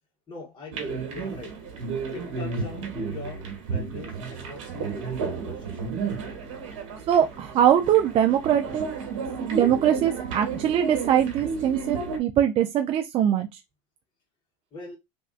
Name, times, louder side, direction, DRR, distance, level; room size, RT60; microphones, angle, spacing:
voice 1, 0.3-1.6 2.1-6.0 9.1-9.2 14.7-15.0, left 2 dB, 30° left, 1.6 m, -41 dB
sound 1, 0.7-12.2, right 5 dB, 80° right, 1.1 m, -32 dB
voice 2, 7.1-8.9 9.5-13.5, right 10 dB, 35° right, 0.4 m, -22 dB
3.2 x 2.6 x 2.3 m
supercardioid pair, 105°, 16 cm